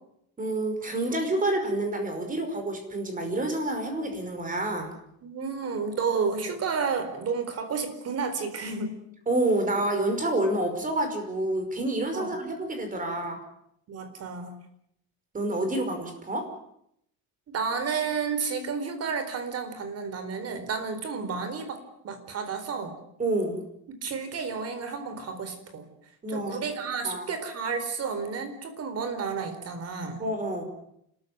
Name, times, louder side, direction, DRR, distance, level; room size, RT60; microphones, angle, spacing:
voice 1, 0.4-4.9 9.3-13.4 15.3-16.5 23.2-23.6 26.2-26.6 27.0-27.3 30.2-30.6, right 1 dB, 20° right, 6 dB, 5.4 m, -28 dB
voice 2, 5.2-8.9 12.1-12.3 13.9-14.6 17.5-23.0 24.0-25.9 26.3-30.2, right 5 dB, 45° right, 9 dB, 4.3 m, -31 dB
29.0 x 14.5 x 9.6 m, 0.75 s
cardioid pair, 165°, 36 cm